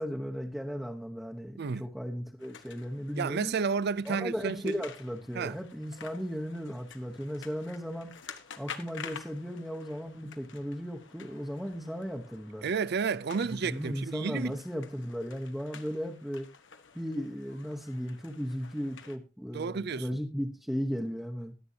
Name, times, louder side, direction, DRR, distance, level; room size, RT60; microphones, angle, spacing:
voice 1, 0.0-3.5 4.1-8.1 8.6-12.7 13.6-16.5 16.9-21.5, equal, ahead, 1.0 m, -36 dB
sound 1, 2.4-19.2, left 6 dB, 65° left, 1.2 m, -50 dB
voice 2, 3.2-4.8 5.3-5.6 12.6-14.6 19.5-20.2, right 5 dB, 55° right, 0.5 m, -31 dB
20.5 x 7.9 x 2.8 m
head